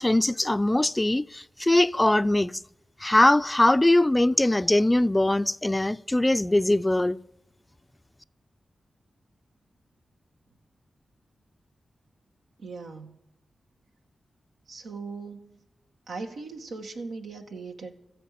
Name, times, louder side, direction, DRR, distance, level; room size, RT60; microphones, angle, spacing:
voice 1, 0.0-2.5 3.0-7.2, left 1 dB, 20° left, 0.5 m, -21 dB
voice 2, 12.6-13.2 14.7-15.6 16.1-18.0, right 4 dB, 85° right, 1.8 m, -39 dB
14.0 x 11.0 x 8.5 m
cardioid pair, 55°, 0 cm